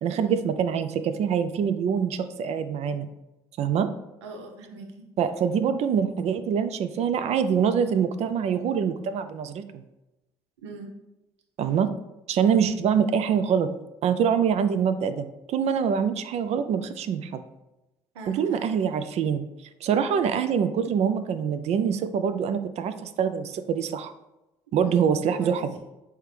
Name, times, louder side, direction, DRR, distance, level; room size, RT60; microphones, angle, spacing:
voice 1, 0.0-3.1 3.6-3.9 5.2-9.8 11.6-11.9 12.3-13.7 14.0-17.4 18.3-19.4 19.8-24.1 24.7-25.8, right 7 dB, 50° right, 10 dB, 0.4 m, -25 dB
voice 2, 4.2-4.9 10.6-10.9 18.1-18.8 24.8-25.6, right 2 dB, 85° right, 3 dB, 0.7 m, -41 dB
4.2 x 3.5 x 3.2 m, 0.97 s
hypercardioid pair, 60°, 14 cm